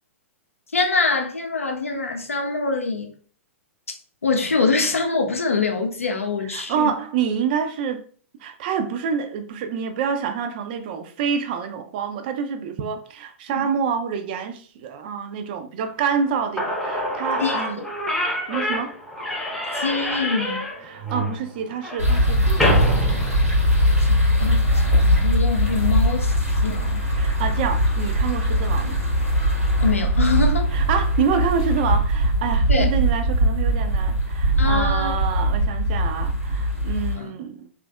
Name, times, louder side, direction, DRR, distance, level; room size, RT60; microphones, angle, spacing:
voice 1, 0.7-3.1 3.9-4.0 4.2-6.9 13.5-13.7 17.4-17.6 19.7-20.6 24.0-26.3 26.6-27.0 29.8-30.7 32.7-32.9 34.6-35.1 37.1-37.3, left 4 dB, 75° left, 0.6 m, -24 dB
voice 2, 6.4-8.0 8.4-17.9 18.5-18.9 20.8-22.9 27.2-29.0 30.7-37.7, right 7 dB, 40° right, 0.4 m, -27 dB
Slam / Squeak, 16.3-16.4 16.6-24.0, equal, 5° left, 0.7 m, -26 dB
sound 1, 22.0-37.1, equal, 90° right, 1.1 m, -20 dB
3.2 x 2.5 x 2.2 m
figure-of-eight pair, 105°, 8 cm